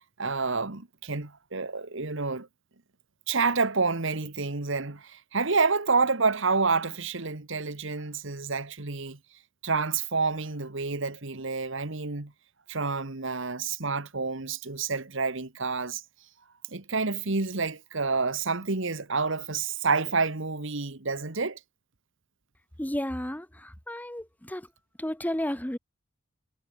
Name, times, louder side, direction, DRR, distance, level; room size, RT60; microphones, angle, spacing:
voice 1, 0.2-2.5 3.3-9.2 9.6-12.3 12.7-16.0 16.7-21.6, right 4 dB, 65° right, 1.7 m, -28 dB
voice 2, 22.8-24.7 25.0-25.8, left 1 dB, 10° left, 1.3 m, -32 dB
head